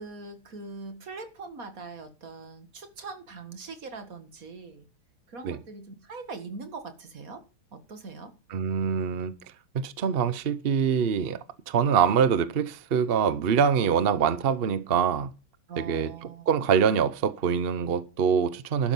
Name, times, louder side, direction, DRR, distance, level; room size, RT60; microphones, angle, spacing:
voice 1, 0.0-4.9 5.3-7.4 7.7-8.4 15.7-16.5, right 4 dB, 45° right, 2.1 m, -42 dB
voice 2, 8.5-9.3 9.7-11.4 11.7-15.3 15.8-16.1 16.5-18.9, right 7 dB, 60° right, 0.6 m, -24 dB
12.0 x 9.9 x 5.6 m
omnidirectional pair, 2.2 m